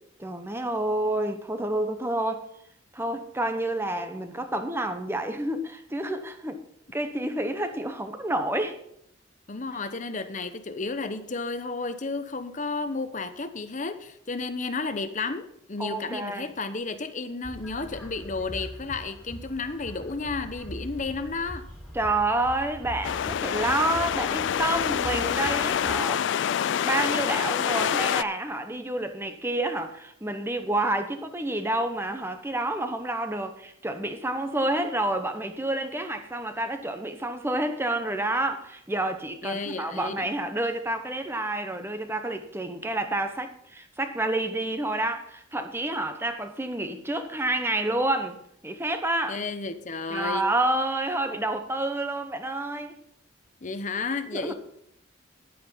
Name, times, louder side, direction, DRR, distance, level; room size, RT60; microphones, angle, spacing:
voice 1, 0.2-2.4 2.9-6.6 6.9-8.8 15.8-16.5 21.9-26.2 26.8-48.4 48.6-49.4 50.1-52.9 54.3-54.5, right 1 dB, 10° right, 0.9 m, -29 dB
voice 2, 9.5-21.7 39.4-40.3 49.3-50.4 53.6-54.5, left 3 dB, 40° left, 0.8 m, -32 dB
sound 1, 17.4-26.0, equal, 5° left, 3.0 m, -42 dB
sound 2, 23.0-28.2, left 9 dB, 70° left, 0.3 m, -26 dB
10.5 x 8.2 x 5.5 m
head